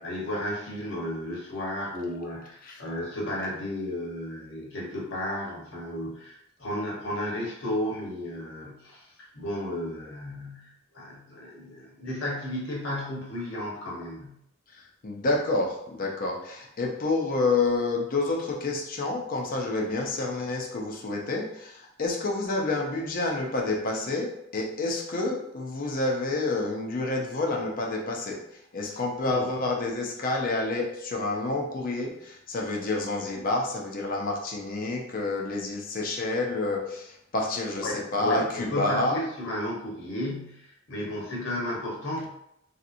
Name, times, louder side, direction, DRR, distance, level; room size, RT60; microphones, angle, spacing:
voice 1, 0.0-14.4 28.8-29.0 29.2-29.5 37.7-42.3, left 1 dB, 70° left, -4 dB, 1.1 m, -33 dB
voice 2, 15.0-28.4 28.7-39.2, left 2 dB, 45° left, 0 dB, 0.5 m, -29 dB
3.1 x 2.8 x 2.5 m, 0.77 s
head